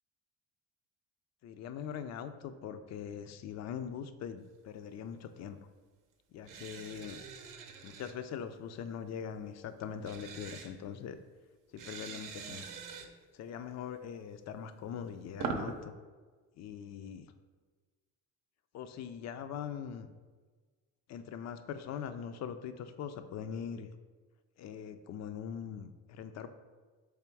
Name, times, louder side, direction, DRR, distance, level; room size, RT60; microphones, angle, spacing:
voice 1, 1.4-5.7 6.3-7.2 7.8-11.2 11.7-12.6 13.3-15.9 16.6-17.3 18.7-20.1 21.1-23.9 24.6-26.5, left 8 dB, 50° left, 10 dB, 0.4 m, -42 dB
sound 1, 6.4-8.1 10.0-10.7 11.8-13.1 14.8-15.7, right 5 dB, 60° right, 0.7 m, -42 dB
3.5 x 3.3 x 4.5 m, 1.4 s
supercardioid pair, 85°, 35 cm